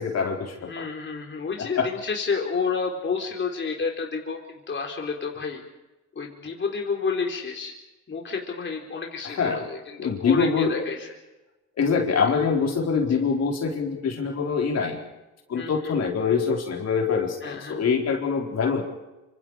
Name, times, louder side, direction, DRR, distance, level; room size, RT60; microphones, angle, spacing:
voice 1, 0.0-0.8 1.6-1.9 9.2-9.7 10.0-10.8 11.8-15.0 15.5-18.8, left 5 dB, 55° left, 1 dB, 4.5 m, -24 dB
voice 2, 0.6-5.6 6.2-7.7 8.1-11.1 13.1-13.2 15.5-16.0 17.4-17.8, left 5 dB, 40° left, 0 dB, 3.9 m, -30 dB
26.5 x 26.0 x 5.0 m, 1.0 s
cardioid pair, 90°, 30 cm